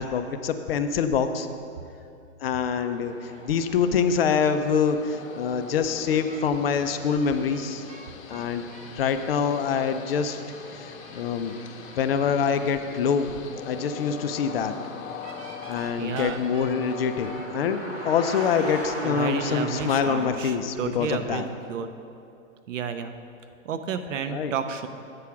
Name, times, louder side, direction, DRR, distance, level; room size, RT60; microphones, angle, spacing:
voice 1, 0.0-1.5 2.4-7.9 8.3-8.7 8.9-10.4 11.1-11.5 12.0-13.3 13.7-14.7 15.7-21.5 24.3-24.5, left 6 dB, 45° left, 9 dB, 0.4 m, -25 dB
sound 1, 2.6-20.3, equal, 15° right, 1.5 m, -42 dB
Train, 3.2-19.9, left 7 dB, 70° left, 0.8 m, -43 dB
sound 2, 6.3-12.8 15.2-18.9, right 3 dB, 50° right, 1.0 m, -49 dB
voice 2, 16.0-16.4 19.0-21.9 22.7-23.1 23.6-24.9, right 7 dB, 65° right, 9 dB, 0.7 m, -31 dB
8.4 x 4.8 x 5.8 m, 2.6 s
hypercardioid pair, 150°, 41 cm